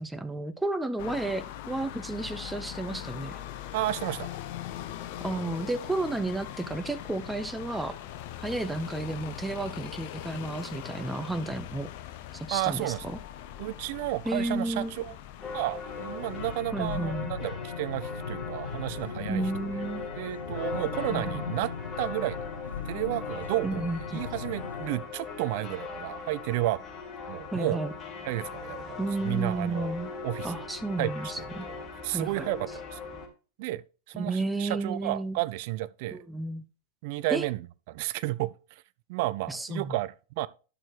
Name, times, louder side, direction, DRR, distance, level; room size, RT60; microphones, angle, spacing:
voice 1, 0.0-3.4 5.2-7.9 8.4-11.9 12.3-12.9 14.2-15.0 16.7-17.3 19.3-20.1 21.1-21.4 23.6-24.2 27.5-27.9 29.0-30.1 30.4-31.7 32.1-32.4 34.1-35.4 36.1-36.6 37.3-37.4 39.5-40.0, right 2 dB, 5° right, 0.8 m, -32 dB
sound 1, 1.0-16.6, left 12 dB, 50° left, 1.0 m, -41 dB
voice 2, 3.7-4.3 12.5-13.1 13.6-15.1 15.5-19.4 20.2-21.7 22.0-22.5 22.8-26.8 27.3-27.8 28.2-29.9 30.2-30.5 31.0-31.7 32.0-33.0 33.6-36.2 37.0-38.8 39.1-40.5, right 17 dB, 55° right, 0.5 m, -32 dB
sound 2, 15.4-33.3, left 4 dB, 20° left, 2.6 m, -39 dB
sound 3, 15.9-24.9, left 6 dB, 80° left, 0.9 m, -39 dB
11.0 x 6.4 x 3.3 m
figure-of-eight pair, 95°, 0 cm